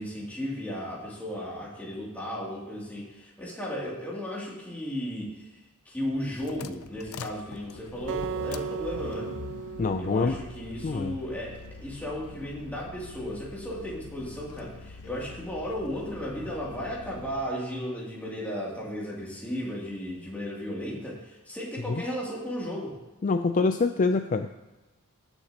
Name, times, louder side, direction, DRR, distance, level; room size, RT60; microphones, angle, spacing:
voice 1, 0.0-9.3 10.0-22.9, equal, 5° left, -5 dB, 2.7 m, -35 dB
sound 1, 6.0-17.6, left 4 dB, 85° left, 0.6 m, -44 dB
Acoustic guitar, 8.1-11.3, right 7 dB, 60° right, 0.3 m, -37 dB
voice 2, 9.8-10.4 10.8-11.2 21.9-22.0 23.2-24.5, left 4 dB, 35° left, 8 dB, 0.4 m, -25 dB
18.0 x 7.1 x 2.9 m, 1.1 s
head